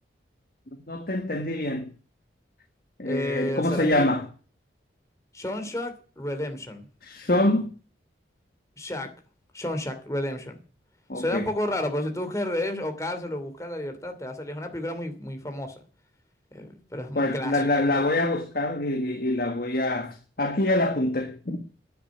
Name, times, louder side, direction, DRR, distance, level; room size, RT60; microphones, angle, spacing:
voice 1, 0.9-1.9 3.0-4.2 7.0-7.7 11.1-11.5 17.1-21.6, left 1 dB, 50° left, 1.5 m, -25 dB
voice 2, 3.0-4.1 5.3-6.9 8.8-9.1 9.5-10.6 11.1-15.8 16.5-17.7, left 1 dB, 15° left, 2.7 m, -31 dB
10.0 x 9.8 x 8.5 m
head